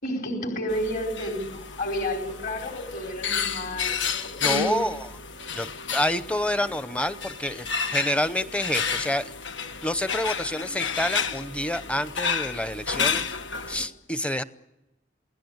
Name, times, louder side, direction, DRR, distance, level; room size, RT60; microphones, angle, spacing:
voice 1, 0.0-4.8, equal, 50° left, 2 dB, 4.7 m, -31 dB
sound 1, 0.7-13.9, left 6 dB, 90° left, 1.5 m, -31 dB
voice 2, 4.4-5.1 5.5-9.3 9.8-13.3 13.7-14.4, left 1 dB, 5° left, 13 dB, 0.8 m, -28 dB
28.0 x 18.0 x 8.1 m, 0.91 s
head